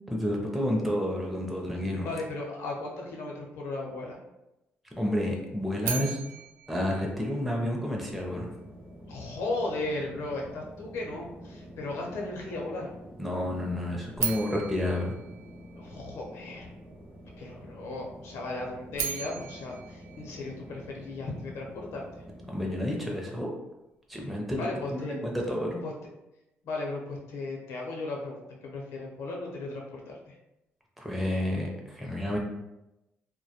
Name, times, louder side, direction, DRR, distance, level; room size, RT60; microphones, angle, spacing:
voice 1, 0.1-2.1 5.0-6.2 6.7-8.5 13.2-15.1 22.5-23.5 24.1-25.8 31.0-32.4, left 1 dB, ahead, -2 dB, 0.4 m, -30 dB
voice 2, 2.0-4.2 9.1-12.9 15.8-16.7 17.4-22.0 24.5-25.2 25.8-26.1 26.6-30.3, left 2 dB, 85° left, -1 dB, 0.6 m, -36 dB
sound 1, 5.8-8.0 14.1-16.3 18.7-21.1, right 8 dB, 90° right, 0.3 m, -37 dB
sound 2, 8.1-22.9, equal, 45° right, 0.8 m, -48 dB
2.2 x 2.1 x 2.8 m, 0.93 s
cardioid pair, 90°, 4 cm